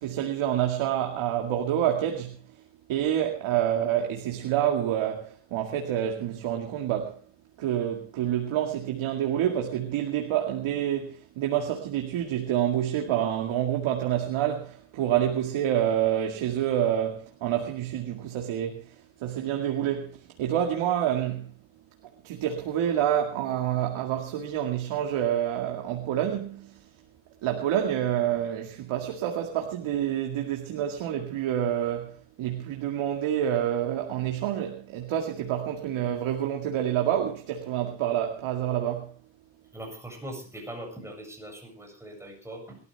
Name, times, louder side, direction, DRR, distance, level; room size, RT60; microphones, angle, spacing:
voice 1, 0.0-2.4 2.9-7.2 7.6-19.0 19.2-21.5 22.2-26.8 27.4-39.1, right 10 dB, 85° right, 2.2 m, -28 dB
voice 2, 39.7-42.8, right 1 dB, 5° right, 7.7 m, -41 dB
21.5 x 13.5 x 3.5 m
cardioid pair, 100°, 47 cm